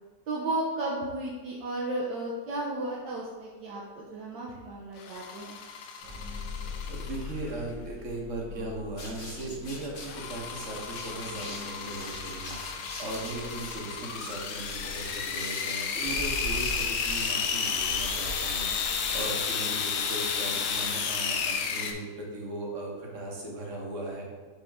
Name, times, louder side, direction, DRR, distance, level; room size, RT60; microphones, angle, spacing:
voice 1, 0.3-5.6, right 2 dB, 70° right, -3 dB, 1.4 m, -34 dB
sound 1, 5.0-7.5 10.0-21.9, left 6 dB, 85° left, 1.4 m, -32 dB
sound 2, 6.0-15.7, left 5 dB, 90° right, 2.2 m, -44 dB
voice 2, 6.9-24.3, right 2 dB, 45° right, -1 dB, 1.3 m, -38 dB
sound 3, 8.9-19.4, equal, 55° left, 0.6 m, -41 dB
6.3 x 4.4 x 3.5 m, 1.5 s
omnidirectional pair, 2.0 m